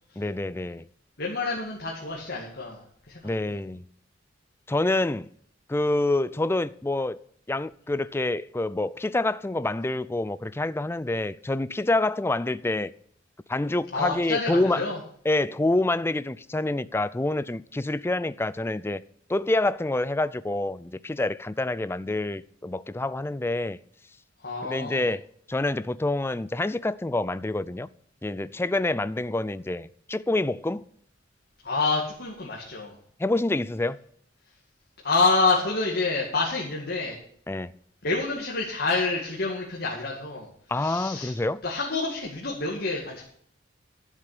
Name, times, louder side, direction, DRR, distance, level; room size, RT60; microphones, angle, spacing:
voice 1, 0.2-0.8 3.2-3.8 4.7-5.3 5.7-7.2 7.5-12.9 13.5-14.8 15.3-19.0 19.3-23.8 24.6-27.9 28.2-30.8 33.2-34.0 37.5-37.7 40.7-41.6, left 2 dB, 10° left, 0.4 m, -27 dB
voice 2, 1.2-3.5 13.9-15.0 24.4-25.1 31.6-32.9 35.0-37.2 38.0-40.5 40.8-41.3 41.6-43.2, left 3 dB, 55° left, 2.3 m, -27 dB
11.5 x 7.4 x 6.7 m
head